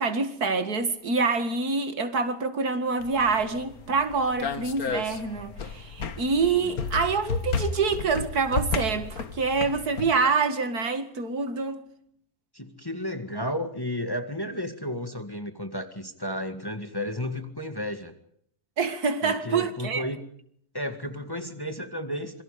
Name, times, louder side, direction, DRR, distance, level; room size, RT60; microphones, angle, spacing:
voice 1, 0.0-11.9 18.8-20.1, right 4 dB, 90° right, 2.5 m, -26 dB
sound 1, 3.0-10.1, left 4 dB, 75° left, 1.9 m, -33 dB
voice 2, 12.5-18.1 19.2-20.2 20.7-22.4, left 1 dB, 15° left, 1.8 m, -33 dB
26.5 x 23.5 x 5.1 m
omnidirectional pair, 1.6 m